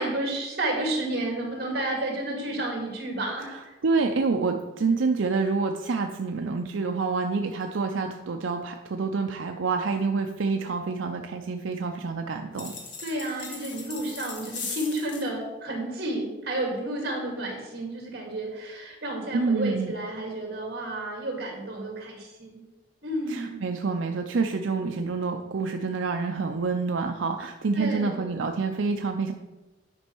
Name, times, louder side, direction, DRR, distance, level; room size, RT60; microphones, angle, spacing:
voice 1, 0.0-3.8 13.0-22.7 23.0-23.6 27.7-28.2, right 1 dB, 55° right, 0 dB, 2.2 m, -31 dB
voice 2, 3.5-12.7 19.3-19.9 23.3-29.3, right 4 dB, 85° right, 4 dB, 0.5 m, -27 dB
sound 1, 12.5-15.3, left 5 dB, 70° left, 1.5 m, -38 dB
9.7 x 5.3 x 4.6 m, 1.1 s
head